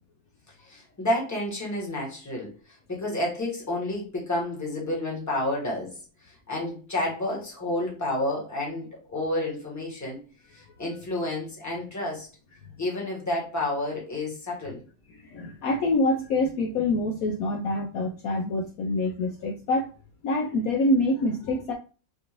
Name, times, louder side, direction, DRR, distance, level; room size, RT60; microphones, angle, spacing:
voice 1, 0.6-10.2 10.5-12.3 12.8-14.8, left 1 dB, 10° left, -3 dB, 1.0 m, -30 dB
voice 2, 15.2-19.9 20.2-21.7, left 2 dB, 80° left, 2 dB, 0.8 m, -26 dB
4.5 x 2.5 x 2.9 m, 0.35 s
omnidirectional pair, 2.1 m